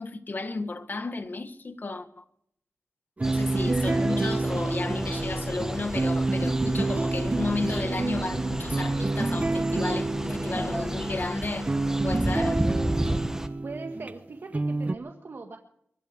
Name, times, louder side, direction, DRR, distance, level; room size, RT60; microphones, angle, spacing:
voice 1, 0.0-2.2 3.2-11.7 12.0-12.6, left 3 dB, 45° left, 1.5 m, -33 dB
sound 1, 3.2-13.5, right 1 dB, 10° right, 1.5 m, -33 dB
sound 2, 3.2-14.1 14.5-14.9, right 2 dB, 35° right, 0.8 m, -28 dB
sound 3, 4.9-11.3, left 2 dB, 30° left, 2.8 m, -42 dB
voice 2, 13.6-15.6, right 3 dB, 60° right, 1.6 m, -40 dB
24.0 x 8.4 x 6.9 m
wide cardioid pair, 80°, 4 cm